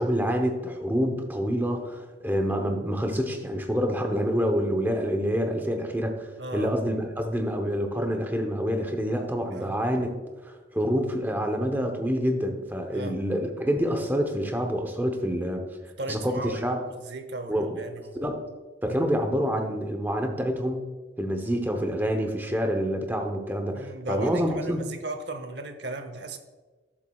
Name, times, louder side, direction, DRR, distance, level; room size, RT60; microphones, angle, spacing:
voice 1, 0.0-10.1 10.5-15.6 16.1-16.8 17.5-17.8 18.2-18.4 18.8-20.9 21.2-24.8, equal, 10° right, 4 dB, 0.8 m, -27 dB
voice 2, 6.4-6.8 9.5-9.8 12.9-13.2 16.0-16.7 17.0-18.2 18.9-19.0 23.7-26.4, right 2 dB, 65° right, 8 dB, 0.8 m, -36 dB
12.0 x 7.3 x 2.3 m, 1.3 s
head